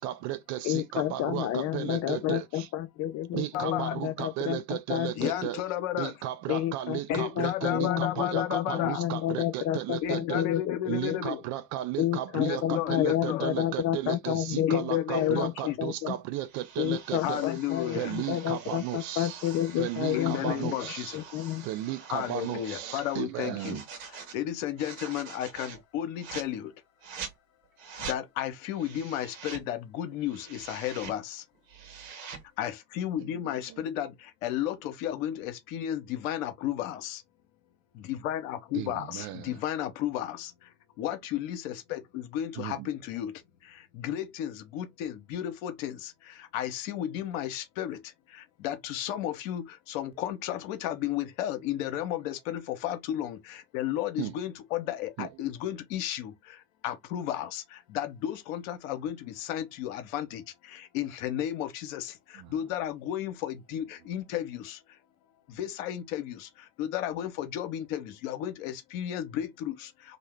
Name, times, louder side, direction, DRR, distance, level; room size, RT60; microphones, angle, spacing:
voice 1, 0.0-2.7 3.3-5.6 6.0-10.5 10.9-17.4 17.9-19.4 19.8-21.2 21.6-23.8 33.2-33.3 33.7-33.8 38.7-39.6 42.6-42.9 54.2-54.3 55.2-55.3 62.4-62.5, right 14 dB, 45° right, 0.4 m, -35 dB
voice 2, 0.6-5.4 6.5-11.2 12.0-16.1 16.8-21.7, left 12 dB, 40° left, 0.4 m, -30 dB
voice 3, 3.5-4.0 5.2-6.1 7.1-9.1 10.0-11.4 12.4-13.5 14.7-15.8 17.2-18.1 20.1-21.2 22.1-23.8 24.3-26.7 28.0-31.4 32.6-34.1 34.4-37.2 38.0-40.5 41.0-43.3 43.9-48.0 48.6-56.3 56.8-57.6 57.9-60.4 60.7-64.8 65.5-66.5 66.8-69.9, left 11 dB, 65° left, 0.8 m, -33 dB
sound 1, 15.1-15.3 16.5-23.2 23.6-24.4 24.8-25.8 26.2-26.5 27.0-27.4 27.8-28.2 28.7-29.7 30.1-31.2 31.5-32.5, right 6 dB, 65° right, 1.0 m, -44 dB
2.7 x 2.1 x 3.2 m
figure-of-eight pair, 65°, 44 cm